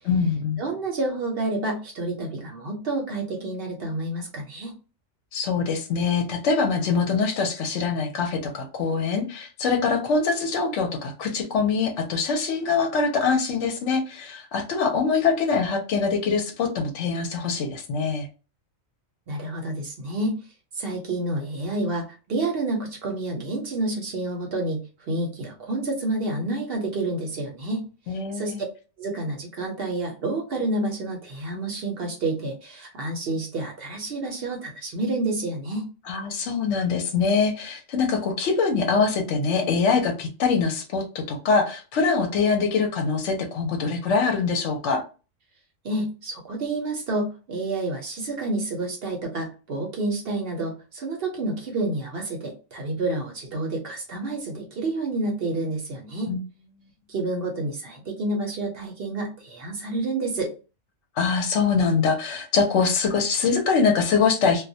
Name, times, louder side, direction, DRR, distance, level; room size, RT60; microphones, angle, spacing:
voice 1, 0.1-0.6 5.3-18.3 28.1-28.6 36.1-45.0 56.3-56.4 61.2-64.6, left 5 dB, 70° left, 3 dB, 0.8 m, -23 dB
voice 2, 0.6-4.8 19.3-20.4 20.7-28.5 29.0-35.9 45.8-56.3 57.1-60.5, right 2 dB, 55° right, 1 dB, 0.7 m, -29 dB
2.2 x 2.1 x 2.6 m, 0.33 s
omnidirectional pair, 1.4 m